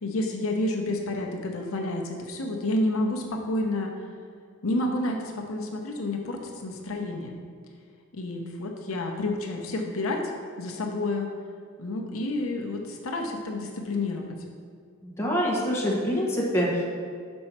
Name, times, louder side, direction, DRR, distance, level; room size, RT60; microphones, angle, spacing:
voice 1, 0.0-3.9 4.6-7.3 8.1-10.2 10.6-11.3 11.8-14.4, left 2 dB, 75° left, 2 dB, 0.7 m, -29 dB
voice 2, 15.0-16.8, equal, 15° left, -4 dB, 1.1 m, -25 dB
5.3 x 4.3 x 5.9 m, 2.2 s
head